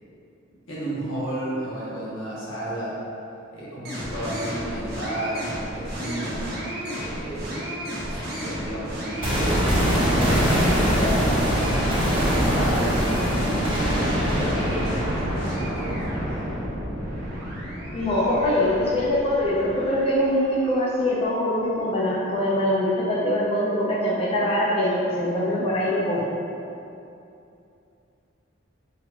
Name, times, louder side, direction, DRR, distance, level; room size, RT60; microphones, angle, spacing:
voice 1, 0.7-3.0 3.5-6.5 6.9-9.7 10.0-11.6 12.0-13.0 13.3-16.1, right 1 dB, 90° left, -8 dB, 1.0 m, -32 dB
sound 1, 3.8-20.8, equal, 55° right, 0.8 m, -35 dB
sound 2, 9.2-19.2 19.5-19.6, equal, 25° right, 1.1 m, -24 dB
voice 2, 17.9-26.2, left 1 dB, 30° left, -7 dB, 0.5 m, -23 dB
4.0 x 2.6 x 2.8 m, 2.7 s
head